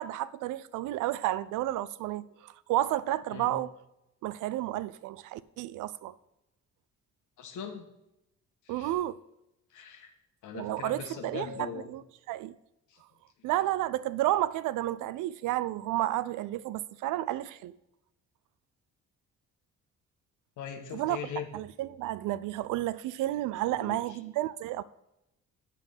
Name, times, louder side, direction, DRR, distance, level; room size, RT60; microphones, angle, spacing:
voice 1, 0.0-3.7 4.2-6.1 8.7-9.2 10.5-12.0 12.3-12.5 13.4-17.7 20.9-21.2 21.5-24.8, right 15 dB, 90° right, 0.5 m, -31 dB
voice 2, 7.4-7.9 8.6-8.9 9.7-10.1 10.4-11.9 12.9-13.0 20.6-21.5 23.7-24.2, left 7 dB, 80° left, 1.3 m, -40 dB
7.5 x 5.7 x 6.5 m
cardioid pair, 90°, 30 cm